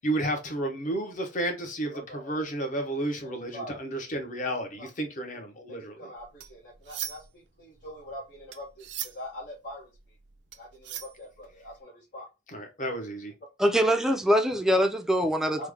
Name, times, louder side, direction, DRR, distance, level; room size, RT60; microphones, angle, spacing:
voice 1, 0.0-6.1 12.5-13.3, right 1 dB, 45° left, 0.8 m, -32 dB
voice 2, 1.9-2.3 3.2-3.8 4.8-4.9 5.7-9.9 10.6-12.3 15.6-15.7, left 1 dB, 85° left, 1.0 m, -43 dB
sound 1, 6.2-7.4 7.8-11.8, right 11 dB, 80° right, 0.4 m, -40 dB
voice 3, 13.6-15.7, equal, 5° right, 0.4 m, -23 dB
3.2 x 2.1 x 3.4 m
head